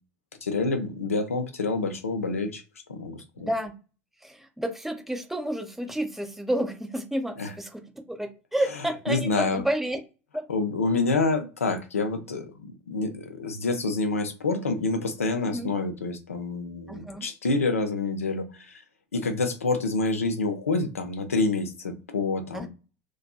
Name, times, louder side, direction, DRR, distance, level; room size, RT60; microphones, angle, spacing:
voice 1, 0.4-2.6 2.9-3.5 7.4-7.5 9.1-9.6 10.5-18.8 19.1-22.7, left 3 dB, 85° left, 7 dB, 0.4 m, -27 dB
voice 2, 3.4-3.8 4.2-10.0 10.3-10.5 15.4-15.7 16.9-17.3 22.5-22.7, right 1 dB, 5° right, 6 dB, 0.5 m, -30 dB
2.5 x 2.3 x 2.3 m, 0.33 s
figure-of-eight pair, 75°, 7 cm